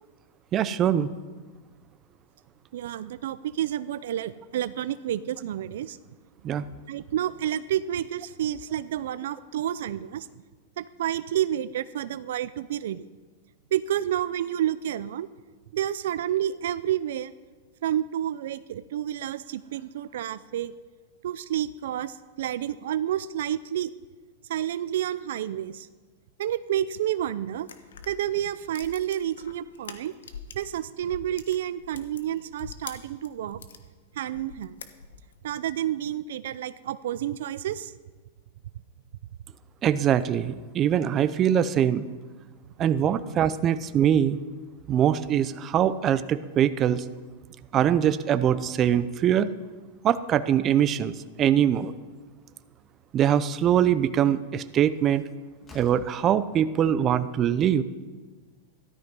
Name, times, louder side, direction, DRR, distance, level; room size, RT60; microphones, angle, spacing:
voice 1, 0.5-1.1 6.4-6.6 39.8-42.0 42.8-44.4 44.9-47.0 47.7-49.5 50.0-51.9 53.1-55.2 55.7-57.8, right 9 dB, 30° right, 14 dB, 0.6 m, -23 dB
voice 2, 2.7-6.0 6.9-10.3 10.8-13.1 13.7-15.3 15.7-17.3 17.8-20.7 21.2-23.9 24.5-25.9 26.4-27.7 28.1-30.1 30.6-33.6 34.2-34.7 35.4-37.9, right 11 dB, 75° right, 15 dB, 0.5 m, -29 dB
sound 1, 27.6-30.8 31.0-33.8 34.3-35.4, left 7 dB, 90° left, 1.2 m, -44 dB
Slam, 55.6-56.2, left 3 dB, 20° left, 2.5 m, -48 dB
14.0 x 12.5 x 5.4 m, 1.4 s
hypercardioid pair, 130°, 0 cm